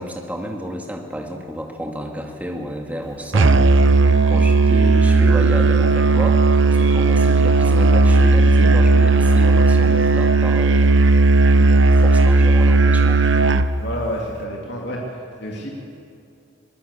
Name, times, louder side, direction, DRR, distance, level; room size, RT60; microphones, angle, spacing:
voice 1, 0.0-3.7 4.3-11.2 11.5-13.2, equal, 5° right, 1 dB, 2.1 m, -31 dB
Musical instrument, 3.3-13.7, right 3 dB, 70° right, 0.8 m, -15 dB
voice 2, 13.8-15.7, equal, 55° left, -2 dB, 2.8 m, -29 dB
21.5 x 18.5 x 8.4 m, 2.6 s
head